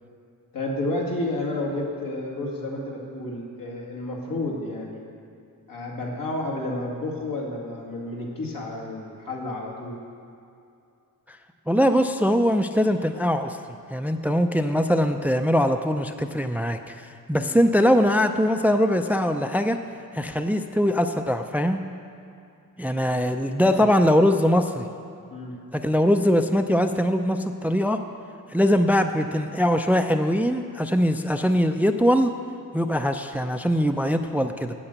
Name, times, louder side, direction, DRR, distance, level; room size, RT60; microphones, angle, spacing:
voice 1, 0.5-5.0 5.7-10.0 17.4-17.5 23.6-23.8 25.3-25.5, left 2 dB, 80° left, -3 dB, 2.3 m, -31 dB
voice 2, 11.7-13.6 13.9-19.8 20.1-21.8 22.8-24.9 25.7-28.0 28.5-32.3 32.7-34.7, equal, 5° right, 7 dB, 0.4 m, -22 dB
8.8 x 8.0 x 8.0 m, 2.6 s
wide cardioid pair, 105°, 34 cm